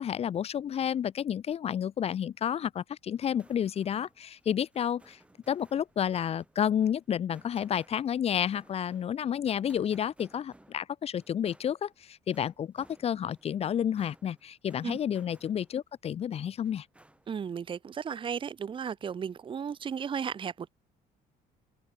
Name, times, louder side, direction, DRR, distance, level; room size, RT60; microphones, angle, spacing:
voice 1, 0.0-5.2 5.5-16.9, left 9 dB, 35° left, 0.5 m, -30 dB
sound 1, 3.2-15.9 16.3-17.5, right 1 dB, 5° right, 3.4 m, -61 dB
voice 2, 17.3-20.7, right 7 dB, 30° right, 0.7 m, -35 dB
cardioid pair, 110°, 17 cm